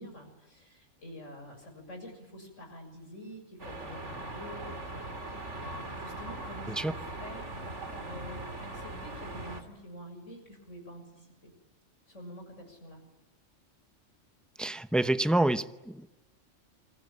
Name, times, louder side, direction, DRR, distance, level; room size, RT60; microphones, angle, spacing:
voice 1, 0.0-11.5 12.1-13.0, equal, 80° left, 7.3 m, -47 dB
sound 1, 3.6-9.6, right 2 dB, 70° right, 3.5 m, -40 dB
voice 2, 14.6-16.1, right 1 dB, ahead, 0.7 m, -27 dB
29.0 x 22.0 x 8.8 m
omnidirectional pair, 1.3 m